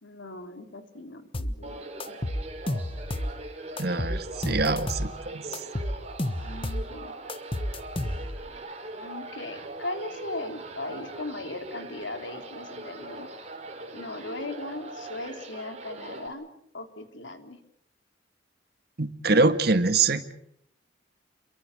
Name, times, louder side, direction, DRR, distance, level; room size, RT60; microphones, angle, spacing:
voice 1, 0.0-2.2 6.4-7.1 9.0-13.3 13.9-16.5 16.7-17.6, left 2 dB, 85° left, 6 dB, 3.2 m, -38 dB
sound 1, 1.3-1.6 2.0-3.4 3.8-5.1 5.5-6.9 7.3-8.5, left 1 dB, 30° left, 1.4 m, -31 dB
sound 2, 1.6-16.3, right 2 dB, 35° right, 4.3 m, -41 dB
voice 2, 3.8-5.4 19.0-20.3, right 3 dB, 60° right, 10 dB, 1.8 m, -24 dB
29.0 x 23.0 x 6.7 m, 0.72 s
head